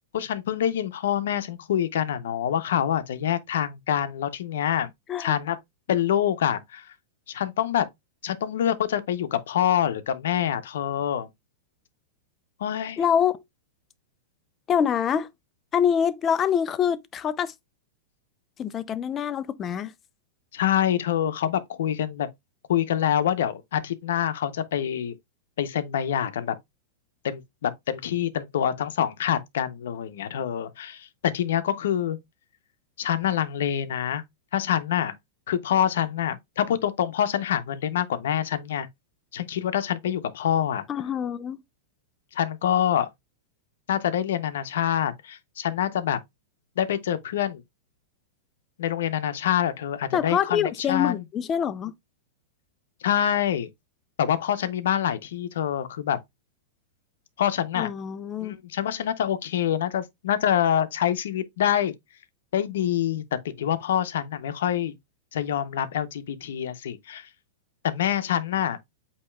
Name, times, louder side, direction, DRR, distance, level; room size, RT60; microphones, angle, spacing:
voice 1, 0.1-4.9 5.2-5.6 5.9-6.9 7.3-7.9 8.2-11.3 12.6-13.0 20.5-22.3 22.7-25.1 25.6-26.6 27.2-32.2 33.0-34.2 34.5-35.1 35.5-38.9 39.3-40.8 42.3-43.1 43.9-46.2 46.8-47.6 48.8-51.2 53.0-53.7 54.2-56.2 57.4-57.9 58.4-61.9 62.5-63.2 63.6-64.9 65.3-67.3 67.8-68.8, left 10 dB, 75° left, 0.7 m, -26 dB
voice 2, 13.0-13.4 14.7-15.3 15.7-17.5 18.6-19.9 40.9-41.6 50.1-51.9 57.8-58.6, left 8 dB, 20° left, 0.4 m, -25 dB
8.3 x 2.8 x 2.3 m
supercardioid pair, 155°, 0 cm